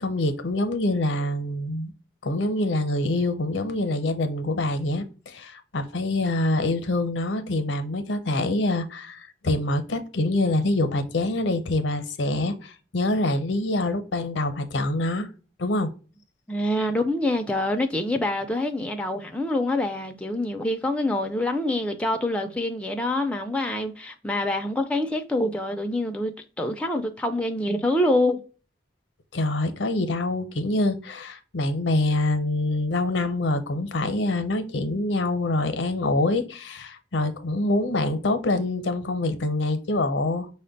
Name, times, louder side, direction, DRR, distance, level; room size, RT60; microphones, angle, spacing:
voice 1, 0.0-1.9 2.2-15.3 15.6-15.9 29.3-40.5, left 2 dB, 80° left, 0.6 m, -25 dB
voice 2, 16.5-28.4, left 1 dB, 5° left, 0.3 m, -26 dB
5.5 x 2.1 x 3.9 m
head